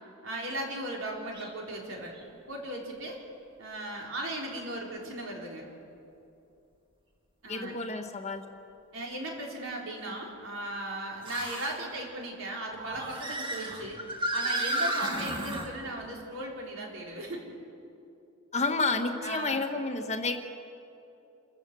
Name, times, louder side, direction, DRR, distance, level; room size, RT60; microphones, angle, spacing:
voice 1, 0.2-2.1 2.5-3.2 3.6-5.7 7.4-7.8 8.9-14.0 14.3-17.4 19.2-19.7, right 1 dB, 65° right, -1 dB, 4.2 m, -37 dB
sound 1, 1.3-1.5 2.1-2.2 4.3-4.4 7.9-8.0 11.2-11.8 12.7-15.7, right 1 dB, 25° right, 2.4 m, -33 dB
voice 2, 7.5-8.4 18.5-20.4, left 3 dB, 30° left, 5 dB, 1.4 m, -30 dB
27.5 x 14.0 x 7.7 m, 2.7 s
head